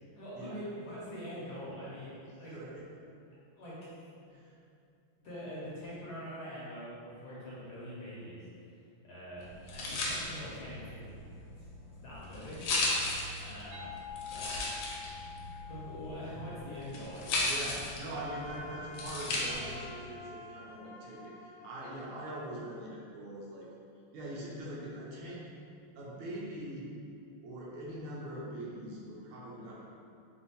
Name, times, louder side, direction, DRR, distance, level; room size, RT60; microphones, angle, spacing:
voice 1, 0.1-2.1 2.4-2.5 3.6-3.9 5.2-8.4 9.0-9.4 9.7-11.1 12.0-12.7 12.9-13.0 13.4-13.9 14.2-14.6 15.6-17.5, equal, 60° left, -9 dB, 1.2 m, -43 dB
voice 2, 2.2-3.0 4.3-4.5 17.4-23.7 24.1-25.4 26.0-26.9 27.4-29.8, right 1 dB, 85° right, -5 dB, 1.7 m, -42 dB
sound 1, 9.4-19.9, left 2 dB, 85° left, 1.6 m, -36 dB
sound 2, 13.7-19.2, left 7 dB, 65° right, 1.6 m, -48 dB
Wind instrument woodwind instrument, 18.1-23.1, left 2 dB, 40° right, 1.3 m, -50 dB
4.2 x 2.3 x 4.0 m, 2.5 s
omnidirectional pair, 2.4 m